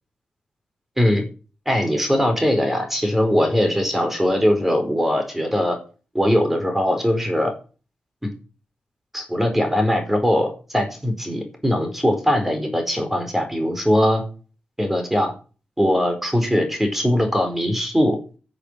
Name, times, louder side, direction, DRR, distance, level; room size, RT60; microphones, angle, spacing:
voice 1, 1.7-5.8 6.1-7.5 8.2-8.3 9.1-14.2 14.8-15.3 15.8-18.2, equal, 5° right, 5 dB, 4.5 m, -21 dB
10.5 x 6.8 x 8.8 m, 0.37 s
cardioid pair, 80°, 3 cm